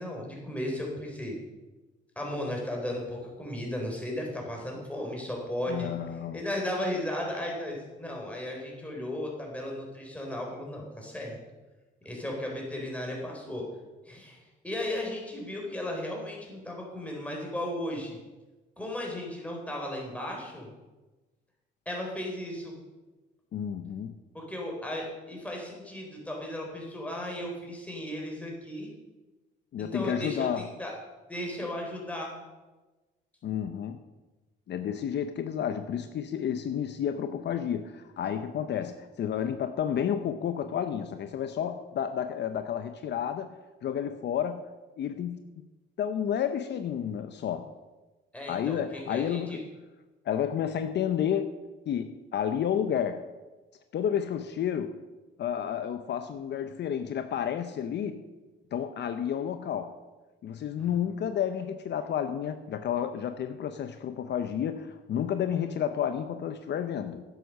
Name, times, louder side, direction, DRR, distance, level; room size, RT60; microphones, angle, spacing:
voice 1, 0.0-1.4 2.2-5.9 6.3-11.4 12.0-13.7 14.1-14.4 14.6-18.2 18.8-20.7 21.9-22.7 24.3-28.9 29.8-30.9 31.3-32.3 48.3-49.6, left 1 dB, 5° left, -1 dB, 3.9 m, -35 dB
voice 2, 5.7-6.4 23.5-24.1 29.7-30.7 33.4-34.0 34.7-44.6 45.0-45.4 46.0-47.7 48.5-49.6 50.2-51.6 51.9-53.2 53.9-54.9 55.4-58.2 58.7-59.9 60.4-67.2, left 9 dB, 60° left, 9 dB, 0.7 m, -31 dB
10.5 x 8.0 x 6.5 m, 1.2 s
cardioid pair, 90°, 20 cm